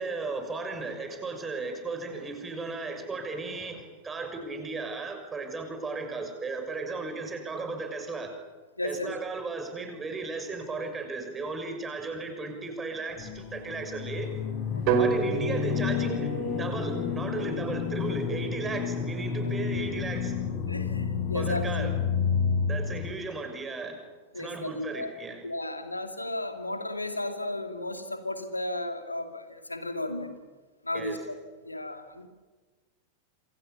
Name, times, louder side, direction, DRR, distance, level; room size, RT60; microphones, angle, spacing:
voice 1, 0.0-8.3 8.8-14.3 15.0-16.3 16.6-20.4 21.3-21.9 22.7-24.0 24.3-25.4 30.9-31.2, right 3 dB, 15° right, 5 dB, 6.5 m, -35 dB
voice 2, 8.8-9.1 14.7-15.1 19.5-19.6 20.7-21.9 24.3-25.1 25.4-30.4 30.8-31.2 31.6-32.3, left 1 dB, 85° left, 7 dB, 2.5 m, -34 dB
sound 1, 13.2-23.1, left 6 dB, 35° left, 5.3 m, -30 dB
sound 2, 14.9-18.9, right 6 dB, 45° right, 4.8 m, -31 dB
28.0 x 27.5 x 7.0 m, 1.4 s
figure-of-eight pair, 90°, 0 cm